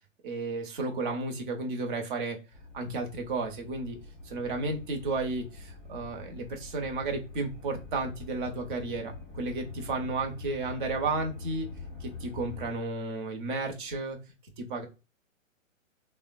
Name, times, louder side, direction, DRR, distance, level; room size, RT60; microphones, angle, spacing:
voice 1, 0.2-2.4 2.7-4.0 4.2-11.7 12.0-14.2 14.6-14.9, right 3 dB, 35° right, 4 dB, 0.9 m, -33 dB
sound 1, 2.5-12.7, left 3 dB, ahead, 0.5 m, -44 dB
3.4 x 2.1 x 2.5 m, 0.29 s
hypercardioid pair, 130°, 41 cm